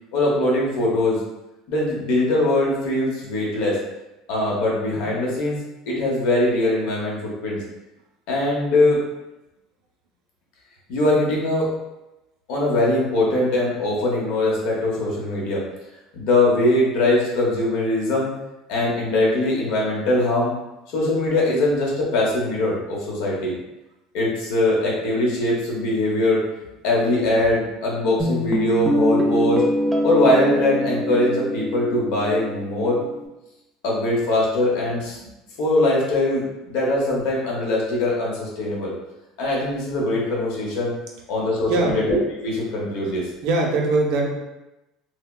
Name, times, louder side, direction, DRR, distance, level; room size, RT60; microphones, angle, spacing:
voice 1, 0.1-1.2 1.7-3.8 4.3-7.6 8.3-9.0 10.9-11.7 12.5-15.6 16.1-18.3 18.7-20.5 20.9-23.6 24.1-26.4 26.8-29.6 30.0-33.0 33.8-35.2 35.6-38.9 39.4-40.9 41.3-42.2 42.4-43.3, left 1 dB, 70° left, -4 dB, 0.8 m, -21 dB
Guitar, 28.2-33.3, equal, 10° right, 0.3 m, -24 dB
voice 2, 43.4-44.3, right 3 dB, 65° right, 1 dB, 0.5 m, -21 dB
3.2 x 2.1 x 2.3 m, 0.95 s
cardioid pair, 155°, 0 cm